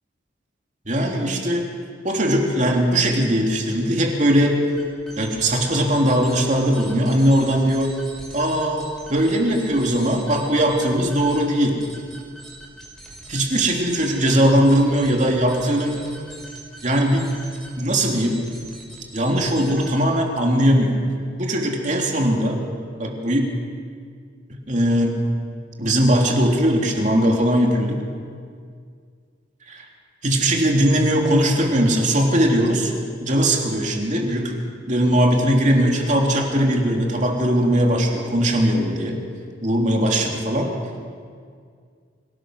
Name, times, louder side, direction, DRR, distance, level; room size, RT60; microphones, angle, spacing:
voice 1, 0.9-1.6 2.0-4.6 5.2-8.0 8.3-11.8 13.3-16.0 16.8-17.3 17.8-18.4 19.1-21.0 21.4-22.6 23.0-23.5 24.7-25.2 25.8-28.0 29.7-29.8 30.2-32.9 33.2-34.6 34.9-39.2 39.6-40.7, equal, 40° right, 1 dB, 2.9 m, -19 dB
sound 1, 4.7-20.2, right 1 dB, ahead, 5.0 m, -42 dB
25.5 x 17.5 x 6.4 m, 2.1 s
head